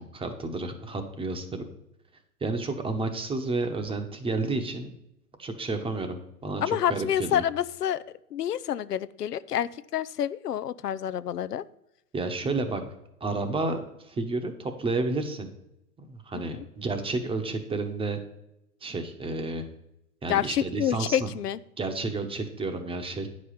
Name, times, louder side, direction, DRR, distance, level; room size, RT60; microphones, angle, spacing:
voice 1, 0.0-1.7 2.4-4.9 5.4-7.4 12.1-12.8 13.2-15.5 16.0-18.2 18.8-19.6 20.2-21.3 21.8-23.3, right 3 dB, 10° right, 6 dB, 1.0 m, -31 dB
voice 2, 6.6-8.0 8.3-11.6 16.5-16.6 20.3-21.6, left 10 dB, 90° left, 15 dB, 0.6 m, -28 dB
9.5 x 5.2 x 5.6 m, 0.83 s
hypercardioid pair, 105°, 46 cm